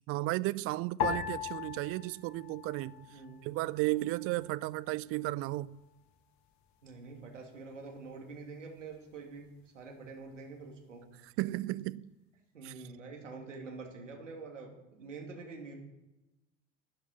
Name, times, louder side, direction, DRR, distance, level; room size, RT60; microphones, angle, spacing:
voice 1, 0.1-5.8 11.4-12.1 12.6-12.7, right 19 dB, 40° right, 0.5 m, -34 dB
sound 1, 1.0-3.5 3.8-4.7 5.3-5.7, left 9 dB, 50° left, 1.6 m, -38 dB
voice 2, 3.1-3.6 6.8-9.5 9.7-11.0 12.5-15.8, right 4 dB, 80° right, 2.6 m, -46 dB
12.0 x 8.0 x 10.0 m
figure-of-eight pair, 70°, 37 cm